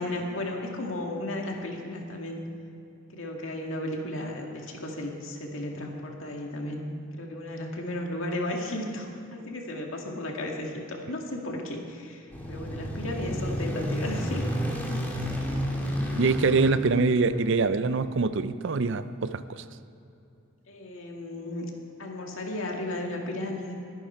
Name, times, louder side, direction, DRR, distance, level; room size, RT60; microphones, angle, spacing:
voice 1, 0.0-2.4 3.1-6.8 7.1-14.5 20.7-21.7 22.0-23.7, left 1 dB, 70° left, 1 dB, 2.1 m, -34 dB
sound 1, 12.3-17.8, equal, 10° left, 1.9 m, -31 dB
voice 2, 16.2-19.6, right 4 dB, 60° right, 13 dB, 0.5 m, -24 dB
21.0 x 10.5 x 4.4 m, 2.7 s
head